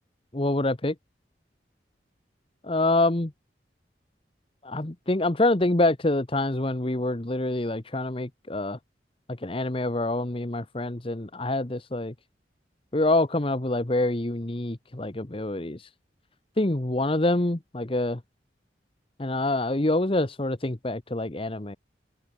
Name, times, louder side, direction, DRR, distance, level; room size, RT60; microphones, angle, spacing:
voice 1, 0.3-0.9 2.6-3.3 4.6-8.8 9.3-12.1 12.9-15.9 16.6-18.2 19.2-21.8, left 2 dB, 30° left, 1.1 m, -26 dB
open air
head